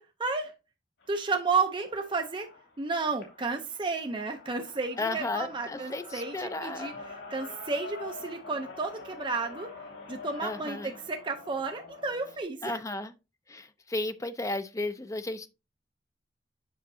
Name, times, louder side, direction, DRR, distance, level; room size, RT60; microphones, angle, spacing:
voice 1, 0.2-0.5 1.1-2.5 2.8-6.9 7.3-9.7 10.1-12.8, right 4 dB, 30° right, 0.6 m, -32 dB
sound 1, 1.0-12.4, left 3 dB, 90° left, 2.6 m, -46 dB
voice 2, 5.0-6.9 10.4-10.9 12.6-13.1 13.5-15.5, left 2 dB, 20° left, 0.6 m, -34 dB
7.6 x 5.9 x 2.7 m
head